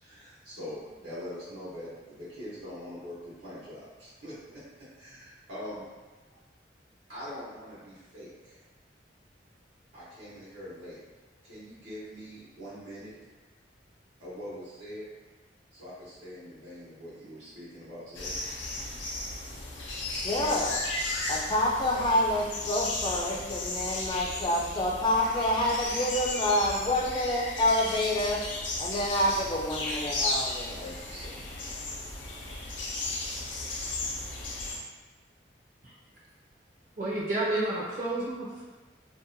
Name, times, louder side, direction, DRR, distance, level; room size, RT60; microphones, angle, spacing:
voice 1, 0.0-5.8 7.1-8.6 9.9-11.0 11.4-13.1 14.2-15.1 15.7-18.3 30.7-31.7, equal, 90° right, -11 dB, 1.0 m, -43 dB
sound 1, 18.1-34.8, left 2 dB, 85° left, 0.5 m, -35 dB
voice 2, 20.2-20.7 21.3-28.4 28.8-30.8, left 1 dB, 25° left, -1 dB, 0.3 m, -27 dB
voice 3, 37.0-38.6, right 2 dB, 45° right, -6 dB, 0.5 m, -30 dB
2.6 x 2.1 x 2.6 m, 1.2 s
head